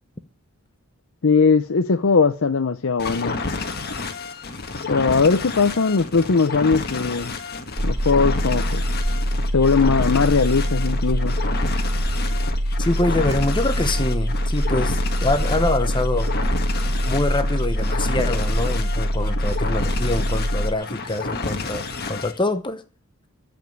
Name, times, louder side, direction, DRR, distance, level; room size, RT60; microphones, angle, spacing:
voice 1, 1.2-3.4 4.9-7.3 7.8-8.8 9.5-11.4, left 4 dB, 60° left, 0.6 m, -19 dB
sound 1, 3.0-22.4, left 3 dB, 45° left, 1.5 m, -30 dB
sound 2, 7.8-20.7, equal, 30° right, 1.1 m, -23 dB
voice 2, 12.8-16.3 17.1-22.8, left 2 dB, 20° left, 0.9 m, -25 dB
14.5 x 5.3 x 9.4 m
head